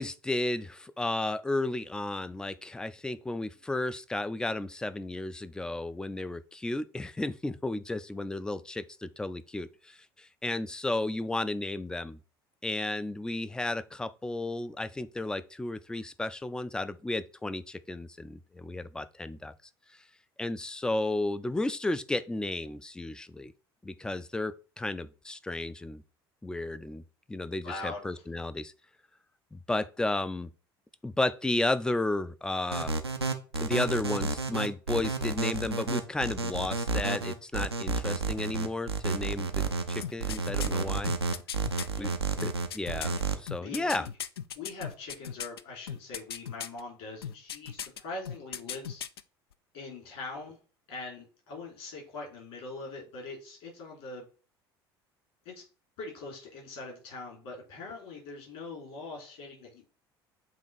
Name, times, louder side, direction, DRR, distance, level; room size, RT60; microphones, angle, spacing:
voice 1, 0.0-12.2 12.6-19.5 20.4-23.5 23.8-26.0 26.4-27.0 27.3-28.7 29.5-30.5 31.0-32.9 33.6-39.6 39.9-41.1 42.0-42.2 42.4-44.1, left 2 dB, 5° left, 0.4 m, -33 dB
voice 2, 27.6-28.1 41.9-42.1 43.6-44.1 44.5-49.0 49.7-50.6 50.9-54.3 55.4-55.6 56.0-59.9, left 3 dB, 60° left, 3.2 m, -42 dB
sound 1, 32.7-43.4, right 3 dB, 85° right, 0.5 m, -30 dB
sound 2, 40.0-41.9 42.4-45.6 45.9-46.8 47.2-48.0 48.2-49.2 49.5-49.6, left 8 dB, 75° left, 0.4 m, -37 dB
7.5 x 3.0 x 4.2 m
figure-of-eight pair, 65°, 13 cm